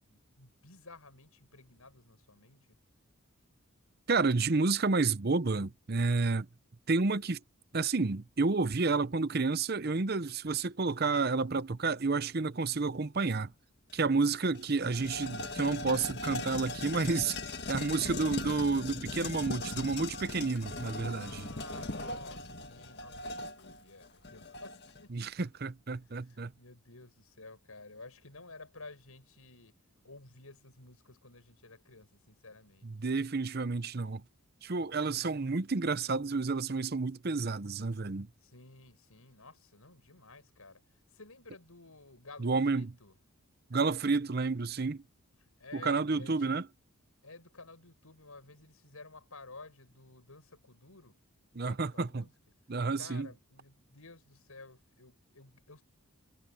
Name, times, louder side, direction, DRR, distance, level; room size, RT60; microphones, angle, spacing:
voice 1, 0.1-2.8 21.0-25.5 25.9-29.7 30.0-32.9 38.4-43.1 45.4-46.5 47.2-51.2 51.6-52.3 53.0-55.8, left 3 dB, 85° left, 6.3 m, -53 dB
voice 2, 4.1-6.5 6.9-7.4 7.7-13.5 13.9-21.5 25.1-26.5 32.8-34.2 34.6-38.3 42.4-42.9 43.7-45.0 45.7-46.7 51.6-52.2 52.7-53.3, right 4 dB, 45° right, 0.7 m, -30 dB
sound 1, 13.9-14.0 14.3-25.0, left 2 dB, 50° left, 1.9 m, -39 dB
head